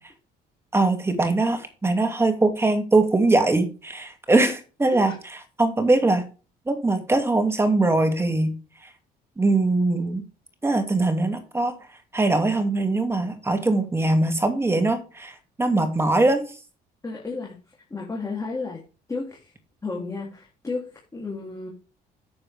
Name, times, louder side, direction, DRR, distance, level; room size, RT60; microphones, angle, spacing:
voice 1, 0.7-5.1 5.6-6.2 6.7-8.6 9.4-10.2 10.6-11.7 12.1-16.4, right 2 dB, 15° right, 7 dB, 2.5 m, -21 dB
voice 2, 17.0-17.5 17.9-18.8 19.1-19.5 19.8-21.7, left 3 dB, 20° left, -2 dB, 3.2 m, -32 dB
9.9 x 7.8 x 3.6 m, 0.33 s
cardioid pair, 110°, 17 cm